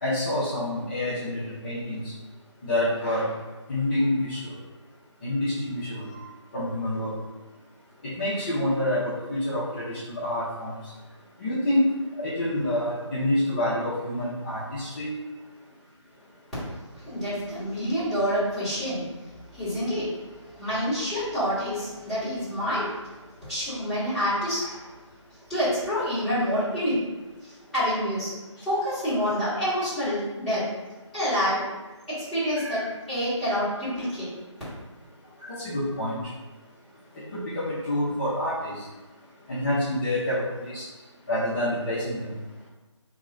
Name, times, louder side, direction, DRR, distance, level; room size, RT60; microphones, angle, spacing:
voice 1, 0.0-2.0 2.6-3.3 3.7-4.4 5.2-6.3 6.5-7.1 8.0-10.7 11.4-11.9 12.2-15.1 24.6-24.7 32.5-32.9 35.4-36.2 37.3-38.7 39.5-40.8 41.3-42.3, left 1 dB, 20° left, -12 dB, 0.7 m, -27 dB
voice 2, 16.7-19.1 19.5-20.1 20.4-22.9 23.4-24.7 25.5-27.0 27.4-28.3 28.6-30.7 31.1-31.6 32.2-32.8 33.1-34.3, equal, ahead, -19 dB, 1.3 m, -27 dB
3.0 x 2.9 x 3.7 m, 1.2 s
figure-of-eight pair, 160°, 16 cm